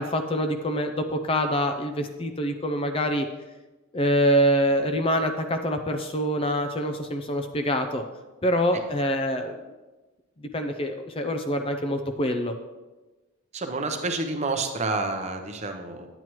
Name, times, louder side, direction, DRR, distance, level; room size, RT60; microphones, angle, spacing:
voice 1, 0.0-3.3 3.9-8.0 8.4-9.5 10.5-12.5, equal, 25° left, 6 dB, 0.5 m, -25 dB
voice 2, 13.5-16.1, right 3 dB, 30° right, 5 dB, 0.7 m, -29 dB
9.8 x 9.0 x 3.1 m, 1.2 s
head